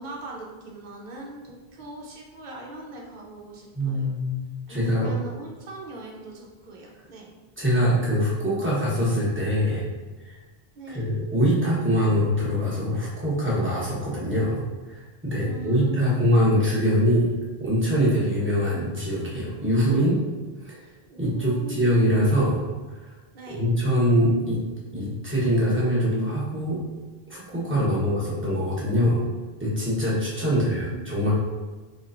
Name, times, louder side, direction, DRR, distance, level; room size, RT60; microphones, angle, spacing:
voice 1, 0.0-4.1 4.7-7.3 10.7-11.1 15.4-16.2 21.1-22.2 23.3-23.6 27.8-28.6 30.5-31.0, right 2 dB, 50° right, -2 dB, 0.8 m, -41 dB
voice 2, 3.7-4.4 4.7-5.1 7.6-9.9 10.9-17.3 17.6-20.2 20.6-20.8 21.2-22.6 23.0-23.1 23.5-24.6 24.9-26.8 27.3-29.2 29.6-31.3, equal, 10° right, -7 dB, 1.0 m, -23 dB
4.0 x 3.0 x 2.5 m, 1.3 s
omnidirectional pair, 1.1 m